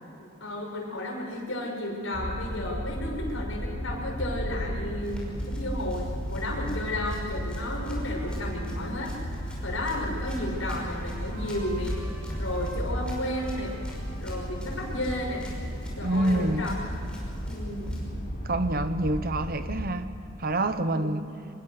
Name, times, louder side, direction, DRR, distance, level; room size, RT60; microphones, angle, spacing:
voice 1, 0.2-9.1 9.6-12.0 12.4-13.8 14.2-15.5 16.0-16.8 17.4-18.0 20.8-21.1, left 1 dB, 70° left, 6.6 m, -33 dB
sound 1, 2.1-19.9, equal, 45° left, 6.7 m, -34 dB
Run, 4.8-18.1, equal, 5° left, 5.7 m, -48 dB
Trumpet, 7.8-16.3, right 2 dB, 75° right, 5.3 m, -51 dB
voice 2, 16.0-16.7 18.4-21.2, right 1 dB, 45° right, 1.1 m, -27 dB
26.0 x 20.5 x 6.7 m
head